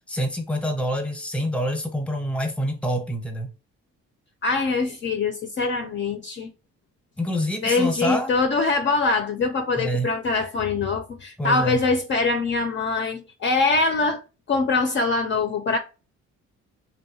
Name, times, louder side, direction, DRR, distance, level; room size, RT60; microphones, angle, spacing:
voice 1, 0.1-3.5 7.2-8.3 9.8-10.1 11.4-11.8, equal, 5° left, 0.7 m, -26 dB
voice 2, 4.4-6.5 7.6-14.2 14.5-15.8, left 3 dB, 40° left, 0.4 m, -23 dB
2.7 x 2.2 x 2.7 m
cardioid pair, 90°, 30 cm